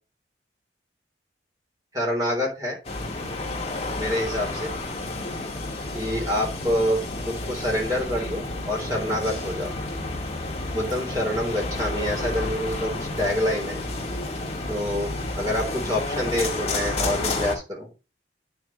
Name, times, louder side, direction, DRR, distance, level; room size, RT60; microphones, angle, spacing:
voice 1, 1.9-2.8 4.0-4.7 5.9-7.0 7.3-9.7 10.7-13.8 14.7-17.9, left 1 dB, 20° right, -2 dB, 3.4 m, -27 dB
sound 1, 2.8-17.6, left 2 dB, 35° left, 2.0 m, -30 dB
9.2 x 5.9 x 3.0 m, 0.30 s
head